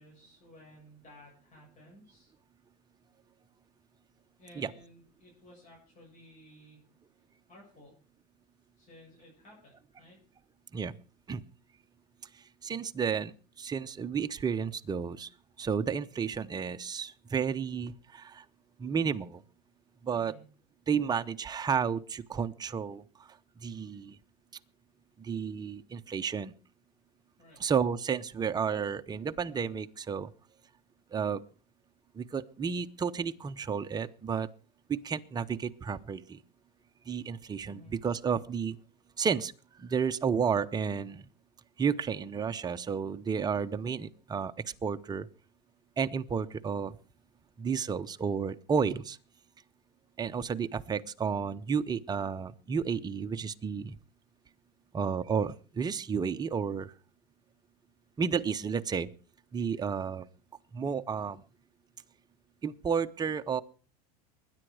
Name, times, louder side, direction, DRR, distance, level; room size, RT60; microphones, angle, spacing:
voice 1, 0.0-2.3 4.4-6.8 7.5-7.9 8.8-10.2 20.1-20.5 27.4-27.6 37.6-37.9, left 1 dB, 35° left, -2 dB, 7.6 m, -55 dB
voice 2, 12.6-15.3 15.6-18.4 18.8-19.4 20.0-20.3 20.9-23.0 23.6-24.2 25.2-26.5 27.6-30.3 31.1-31.4 32.2-34.5 34.9-36.4 37.1-38.8 39.2-39.5 39.8-41.2 41.8-44.5 44.8-45.3 46.0-46.9 47.6-49.2 50.2-54.0 54.9-56.9 58.2-59.1 59.5-60.3 60.7-61.4 62.6-63.6, right 6 dB, 20° right, 9 dB, 0.8 m, -32 dB
21.0 x 9.9 x 4.9 m, 0.38 s
supercardioid pair, 125°, 21 cm